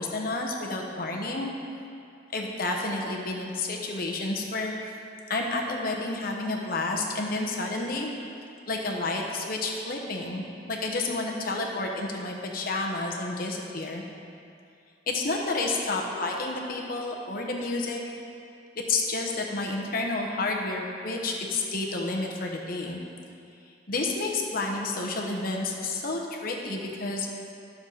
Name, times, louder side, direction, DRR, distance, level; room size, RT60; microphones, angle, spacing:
voice 1, 0.0-1.5 2.3-4.7 5.3-8.1 8.7-14.0 15.1-18.0 18.8-23.0 23.9-27.3, left 2 dB, 50° left, 0 dB, 1.1 m, -30 dB
12.5 x 6.9 x 4.1 m, 2.5 s
head